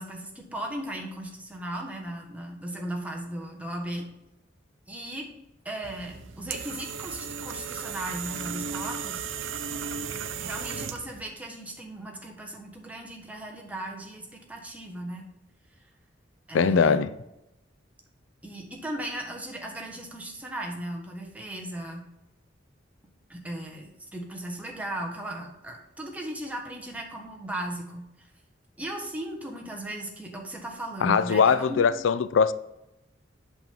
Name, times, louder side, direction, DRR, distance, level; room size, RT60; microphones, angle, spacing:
voice 1, 0.0-4.1 4.9-5.3 5.6-9.3 10.4-15.3 16.5-17.1 18.4-22.1 23.3-28.3 28.8-32.0, right 1 dB, 10° right, 1.4 m, -37 dB
sound 1, 5.8-11.2, right 6 dB, 85° right, 0.6 m, -35 dB
voice 2, 16.5-17.1 31.0-32.5, left 6 dB, 85° left, 0.4 m, -21 dB
8.1 x 6.2 x 3.7 m
head